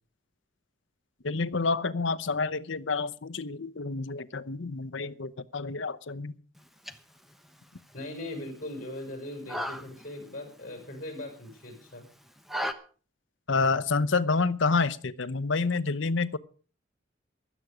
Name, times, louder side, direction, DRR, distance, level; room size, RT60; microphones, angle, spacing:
voice 1, 1.2-6.3 13.5-16.4, left 4 dB, 65° left, 0.8 m, -28 dB
sound 1, 6.6-12.7, equal, ahead, 1.0 m, -40 dB
voice 2, 7.9-12.1, left 1 dB, 40° left, 6.3 m, -40 dB
16.0 x 12.0 x 5.0 m
head